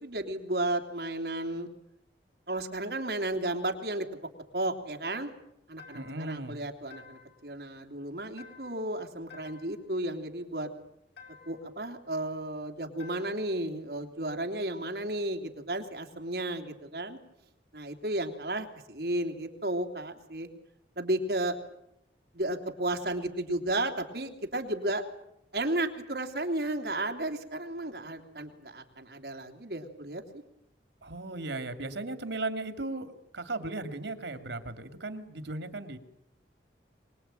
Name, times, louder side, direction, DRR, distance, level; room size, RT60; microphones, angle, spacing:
voice 1, 0.0-1.7 2.5-4.3 4.5-5.3 5.7-10.7 11.4-17.2 17.7-20.5 21.0-21.5 22.3-25.0 25.5-30.4, right 1 dB, 60° right, 5 dB, 3.0 m, -33 dB
sound 1, 5.8-6.3 6.9-7.4 8.4-8.9 9.3-9.8 11.2-11.7 13.0-13.5, left 6 dB, 80° left, 6.5 m, -52 dB
voice 2, 5.9-6.6 31.0-36.0, right 2 dB, 85° right, 9 dB, 2.6 m, -36 dB
24.0 x 21.0 x 9.1 m, 0.81 s
head